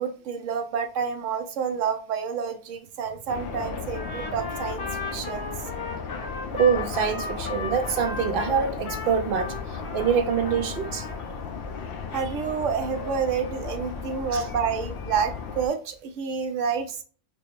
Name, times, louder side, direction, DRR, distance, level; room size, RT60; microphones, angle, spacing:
voice 1, 0.0-5.5 12.1-17.0, right 6 dB, 75° right, 1.0 m, -29 dB
sound 1, 3.3-15.7, left 5 dB, 60° left, 0.6 m, -35 dB
Trumpet, 3.9-10.1 10.4-11.2, left 3 dB, 80° left, 1.4 m, -36 dB
voice 2, 6.5-11.1 14.3-14.4, right 7 dB, 60° right, 0.6 m, -25 dB
4.9 x 2.0 x 3.0 m
omnidirectional pair, 1.3 m